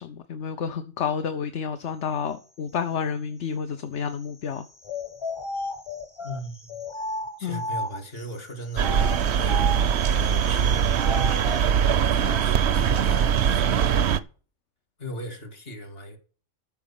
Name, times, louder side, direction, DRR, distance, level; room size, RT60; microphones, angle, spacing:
voice 1, 0.0-4.7 7.4-7.6, left 7 dB, 65° left, 1.2 m, -30 dB
sound 1, 4.8-8.2 8.7-11.7, left 1 dB, 25° left, 1.1 m, -34 dB
voice 2, 6.2-6.8 7.4-9.1 9.4-10.9 12.0-14.2 15.0-16.2, equal, 50° left, 2.3 m, -38 dB
sound 2, 8.8-14.2, right 8 dB, 60° right, 0.9 m, -22 dB
13.5 x 5.2 x 7.0 m
omnidirectional pair, 1.3 m